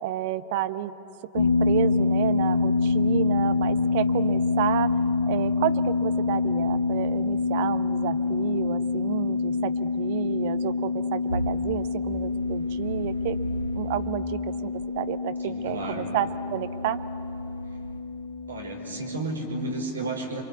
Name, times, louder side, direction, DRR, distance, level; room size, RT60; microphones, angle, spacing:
voice 1, 0.0-0.9 1.3-4.9 5.3-13.4 13.7-17.0, right 13 dB, 50° right, 11 dB, 1.0 m, -31 dB
sound 1, 1.4-19.8, left 4 dB, 70° left, 1.9 m, -26 dB
sound 2, 11.3-14.2 14.8-18.0, right 1 dB, 85° left, 1.4 m, -37 dB
voice 2, 15.4-16.1 18.5-20.4, right 2 dB, 75° right, 2 dB, 5.1 m, -32 dB
28.0 x 24.0 x 8.3 m, 3.0 s
figure-of-eight pair, 90°, 0 cm